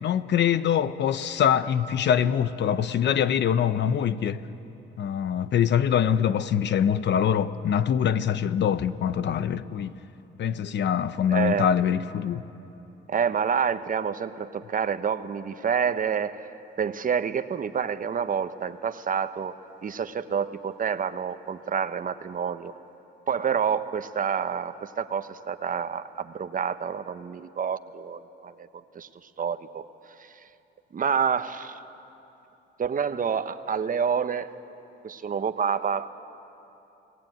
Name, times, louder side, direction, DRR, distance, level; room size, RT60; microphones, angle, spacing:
voice 1, 0.0-4.4 5.0-9.9 10.4-12.4, left 8 dB, 65° left, 0.9 m, -24 dB
voice 2, 11.3-11.7 13.1-16.5 16.8-19.5 19.8-22.7 23.3-28.7 28.9-29.1 29.4-29.9 30.2-30.3 30.9-31.8 32.8-34.5 35.0-36.1, right 7 dB, 45° right, 1.1 m, -28 dB
29.0 x 18.5 x 9.3 m
cardioid pair, 90°, 20 cm